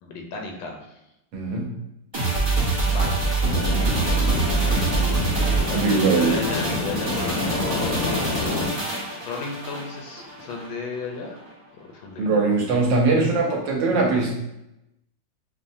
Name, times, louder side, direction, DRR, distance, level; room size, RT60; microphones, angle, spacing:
voice 1, 0.0-1.0 2.8-3.4 4.9-5.7 6.0-8.4 8.7-11.4 11.7-12.4, left 3 dB, 85° left, 1 dB, 1.4 m, -35 dB
voice 2, 1.3-1.7 5.7-6.4 12.2-14.3, right 3 dB, 75° right, 0 dB, 1.5 m, -21 dB
sound 1, 2.1-10.7 11.0-11.1, right 3 dB, 30° right, 0.5 m, -25 dB
sound 2, 3.4-8.7, left 3 dB, 65° left, 0.9 m, -28 dB
5.9 x 2.1 x 2.6 m, 0.89 s
omnidirectional pair, 2.0 m